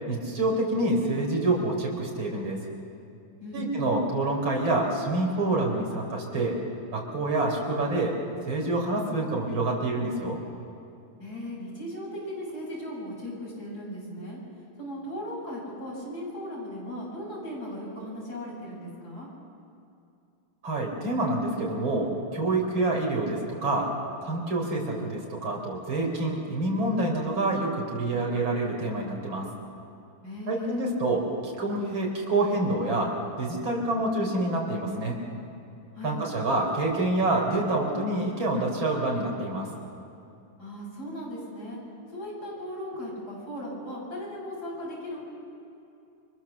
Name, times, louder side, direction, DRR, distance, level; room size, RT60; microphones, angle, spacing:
voice 1, 0.1-2.6 3.5-6.6 6.9-8.1 8.5-10.4 20.6-23.9 24.2-29.5 30.5-31.2 31.6-35.2 36.0-39.7, right 2 dB, 65° right, -1 dB, 4.8 m, -27 dB
voice 2, 11.2-14.4 14.8-19.3 30.2-30.8 35.9-36.2 40.6-41.8 42.1-45.3, equal, 45° left, -4 dB, 7.7 m, -37 dB
30.0 x 23.5 x 7.3 m, 2.6 s
omnidirectional pair, 2.4 m